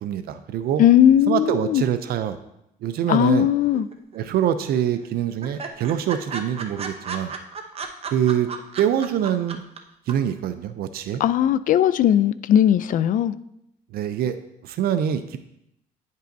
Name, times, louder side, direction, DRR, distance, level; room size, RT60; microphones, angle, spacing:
voice 1, 0.0-0.8 1.3-2.4 2.8-3.5 4.1-7.3 8.1-8.5 8.8-9.6 10.1-11.2 13.9-14.4 14.6-15.4, right 9 dB, 65° right, 0.5 m, -24 dB
voice 2, 0.8-1.8 3.1-3.9 11.2-13.3, left 10 dB, 50° left, 0.4 m, -18 dB
sound 1, 3.7-4.4 4.7-4.8 5.0-5.1 5.4-9.8 10.1-10.2, right 5 dB, 35° right, 0.7 m, -34 dB
9.8 x 5.4 x 2.6 m
cardioid pair, 110°, 17 cm